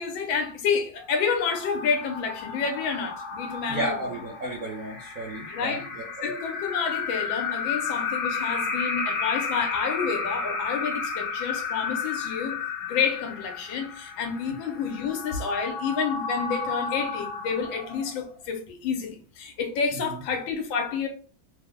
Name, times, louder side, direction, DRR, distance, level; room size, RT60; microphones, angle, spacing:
voice 1, 0.0-4.0 5.5-5.8 6.2-21.1, left 6 dB, 85° left, 1.4 m, -29 dB
sound 1, 1.0-18.4, left 5 dB, 70° left, 1.1 m, -33 dB
voice 2, 3.7-6.3 14.5-14.6 20.1-20.2, right 1 dB, 60° right, 1.0 m, -33 dB
3.3 x 2.0 x 3.5 m
omnidirectional pair, 2.1 m